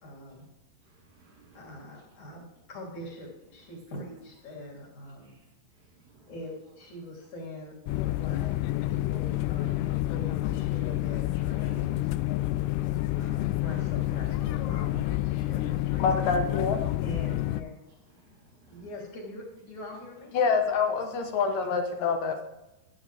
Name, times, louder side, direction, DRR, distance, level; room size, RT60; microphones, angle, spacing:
voice 1, 0.0-0.5 1.5-5.3 6.3-8.5 8.9-12.2 13.1-16.2 17.0-17.7 18.7-20.3, left 1 dB, 45° left, -2 dB, 4.5 m, -43 dB
voice 2, 0.8-1.8 5.2-5.4 5.8-6.3 9.8-9.9 13.0-13.4 18.2-18.9, right 4 dB, 80° right, -9 dB, 5.5 m, -59 dB
sound 1, 7.9-17.6, left 16 dB, 85° left, 2.6 m, -29 dB
voice 3, 16.0-16.8 20.3-22.5, left 5 dB, 70° left, 5 dB, 2.4 m, -26 dB
13.5 x 10.5 x 3.5 m, 0.97 s
omnidirectional pair, 4.7 m